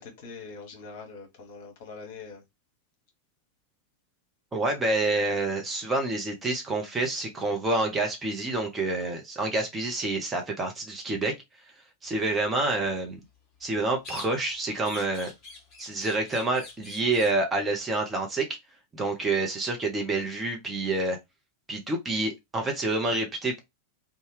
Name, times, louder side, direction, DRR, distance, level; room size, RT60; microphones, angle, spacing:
voice 1, 0.0-2.4, left 4 dB, 50° left, 1.2 m, -43 dB
voice 2, 4.5-11.3 12.0-13.2 13.6-15.3 15.8-18.5 18.9-21.2 21.7-23.6, right 2 dB, 15° right, 0.7 m, -28 dB
sound 1, 14.0-14.6 14.8-17.4, left 4 dB, 30° left, 1.3 m, -44 dB
2.7 x 2.3 x 3.1 m
figure-of-eight pair, 90°, 0 cm